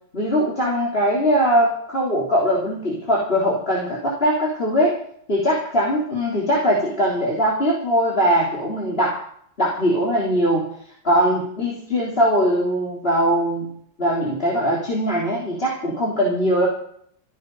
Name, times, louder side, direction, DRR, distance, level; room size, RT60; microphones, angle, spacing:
voice 1, 0.1-5.0 5.3-9.2 9.6-10.7 11.0-13.7 14.0-16.7, equal, 30° left, -4 dB, 3.6 m, -21 dB
15.0 x 14.5 x 5.4 m, 0.64 s
omnidirectional pair, 2.2 m